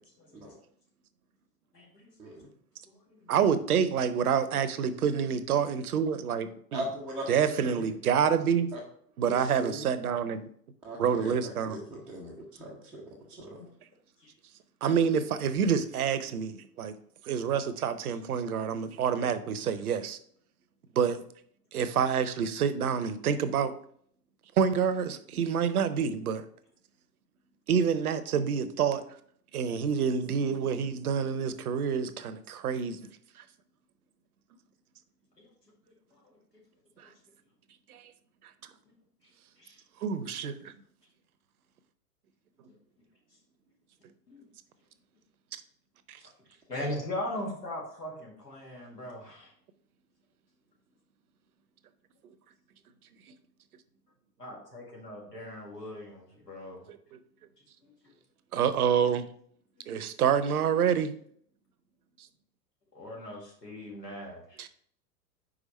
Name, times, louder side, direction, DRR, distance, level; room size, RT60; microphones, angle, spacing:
voice 1, 0.2-0.5 1.7-2.3 2.9-3.3 14.2-14.3 35.4-35.5 36.1-36.4 37.0-37.1 39.6-39.8 40.7-40.8 44.3-44.4 46.7-49.5 54.4-56.9 57.8-58.1 62.9-64.6, left 1 dB, 80° left, -3 dB, 2.0 m, -40 dB
voice 2, 3.3-6.8 7.3-8.7 9.2-10.4 11.0-11.8 14.8-16.9 17.2-20.2 21.0-21.2 21.7-23.8 24.6-26.4 27.7-29.0 29.5-33.0 37.0-37.1 37.9-38.1 40.0-40.7 46.1-46.2 56.9-57.2 58.5-59.3 59.9-61.1 64.6-64.7, right 7 dB, 65° right, 13 dB, 0.7 m, -27 dB
voice 3, 6.7-7.9 8.7-8.8 9.3-9.9 10.8-13.7, right 1 dB, 5° right, -8 dB, 0.4 m, -40 dB
5.0 x 4.9 x 4.1 m, 0.62 s
figure-of-eight pair, 90°, 48 cm